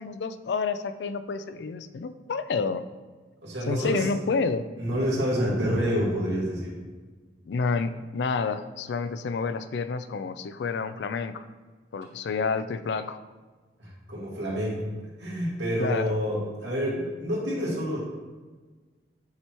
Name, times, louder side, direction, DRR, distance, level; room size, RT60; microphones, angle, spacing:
voice 1, 0.0-2.8 3.7-4.7 7.5-11.5 11.9-13.2 15.8-16.1, left 4 dB, 75° left, 12 dB, 0.4 m, -29 dB
voice 2, 3.4-4.1 4.8-6.8 13.8-14.9 15.2-18.0, equal, 85° right, -5 dB, 2.0 m, -28 dB
8.5 x 3.1 x 4.3 m, 1.3 s
head